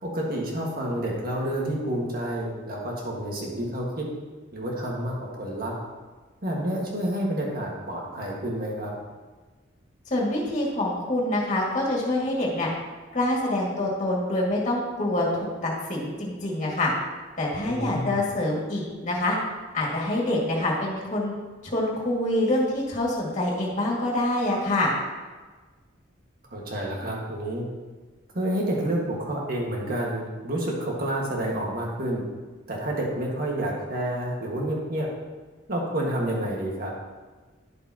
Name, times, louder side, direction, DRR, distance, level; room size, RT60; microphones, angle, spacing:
voice 1, 0.0-4.1 4.5-5.7 6.4-8.9 17.6-18.2 26.5-27.7 28.3-32.2 32.7-35.1 35.7-36.9, right 1 dB, 50° right, -2 dB, 1.7 m, -29 dB
voice 2, 10.1-12.7 13.1-16.9 17.4-19.4 19.7-21.3 21.6-24.9, left 1 dB, 40° left, -4 dB, 2.2 m, -26 dB
11.0 x 6.9 x 2.9 m, 1.3 s
head